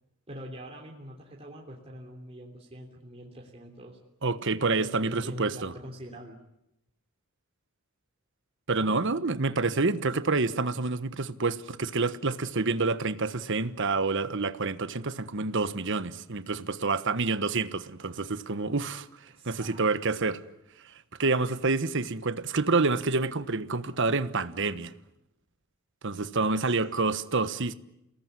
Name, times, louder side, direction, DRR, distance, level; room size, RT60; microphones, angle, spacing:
voice 1, 0.3-4.0 4.7-6.4 8.8-9.0 19.3-19.8 20.1-20.2 26.3-27.1, right 1 dB, 30° right, 3.4 m, -44 dB
voice 2, 4.2-5.7 8.7-19.1 19.4-20.4 21.2-24.9 26.0-27.7, right 3 dB, 60° right, 1.3 m, -28 dB
29.0 x 19.0 x 9.8 m
head